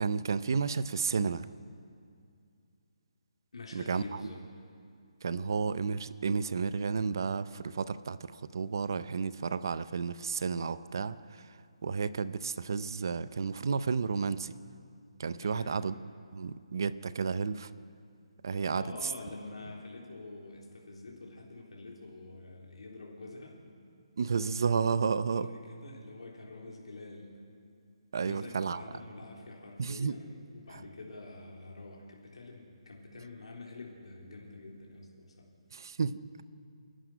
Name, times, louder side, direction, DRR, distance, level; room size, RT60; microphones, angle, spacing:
voice 1, 0.0-1.5 3.7-4.3 5.2-11.5 11.8-14.6 15.2-15.9 16.3-17.7 18.4-18.8 24.2-25.5 28.1-28.8 29.8-30.1 35.7-36.4, right 5 dB, 40° right, 15 dB, 0.6 m, -32 dB
voice 2, 3.5-4.4 15.4-15.9 18.7-23.6 25.3-27.4 28.2-35.6, left 2 dB, 75° left, -2 dB, 3.7 m, -47 dB
27.5 x 11.5 x 9.2 m, 2.4 s
hypercardioid pair, 180°, 3 cm